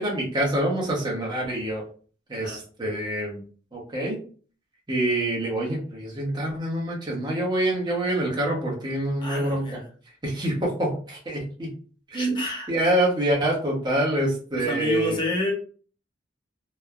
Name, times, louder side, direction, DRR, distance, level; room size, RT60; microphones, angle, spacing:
voice 1, 0.0-1.8 2.3-3.4 3.7-4.2 4.9-9.8 10.2-11.7 12.1-12.4 12.7-15.2, right 1 dB, 25° right, -3 dB, 0.8 m, -26 dB
voice 2, 9.2-9.8 12.1-12.7 14.5-15.5, left 1 dB, 25° left, -1 dB, 0.7 m, -29 dB
3.0 x 2.0 x 2.3 m, 0.41 s
head